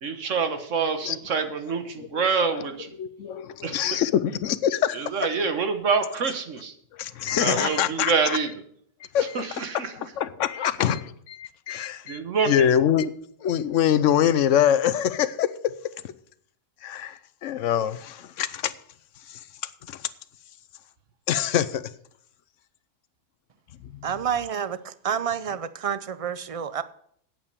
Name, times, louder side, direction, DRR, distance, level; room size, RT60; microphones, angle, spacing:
voice 1, 0.0-2.9 3.6-3.8 4.9-6.7 7.3-8.5 9.3-9.9 11.7-11.8 12.1-12.7, right 5 dB, 85° right, 1.6 m, -26 dB
voice 2, 3.0-5.0 6.9-8.4 9.1-9.6 10.2-12.2 12.5-13.1 13.4-15.5 16.8-18.7 19.3-19.4 19.9-20.1 21.3-21.8 23.8-24.1, left 10 dB, 90° left, 1.0 m, -24 dB
voice 3, 24.0-26.8, right 8 dB, 55° right, 0.4 m, -29 dB
8.9 x 8.6 x 6.7 m
omnidirectional pair, 1.3 m